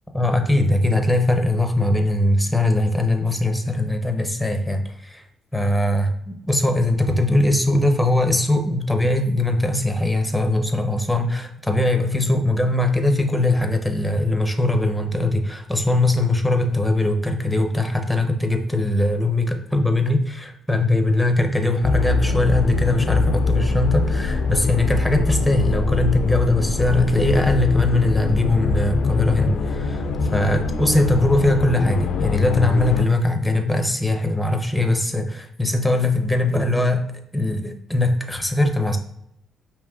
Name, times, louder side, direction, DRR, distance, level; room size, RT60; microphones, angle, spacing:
voice 1, 0.1-5.2 5.5-37.0 37.3-39.0, left 2 dB, ahead, 5 dB, 0.6 m, -21 dB
sound 1, 21.8-33.0, left 4 dB, 70° left, 0.3 m, -23 dB
5.2 x 2.9 x 2.3 m, 0.75 s
cardioid pair, 90°, 0 cm